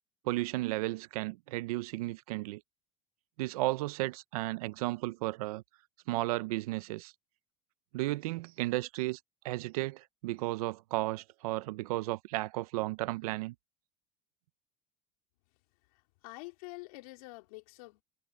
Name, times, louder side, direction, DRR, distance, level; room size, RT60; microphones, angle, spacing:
voice 1, 0.2-2.6 3.4-5.6 6.1-7.1 7.9-9.2 9.4-13.5, right 19 dB, 90° right, 0.8 m, -34 dB
voice 2, 15.9-18.0, left 24 dB, 80° left, 4.0 m, -47 dB
supercardioid pair, 110°, 18 cm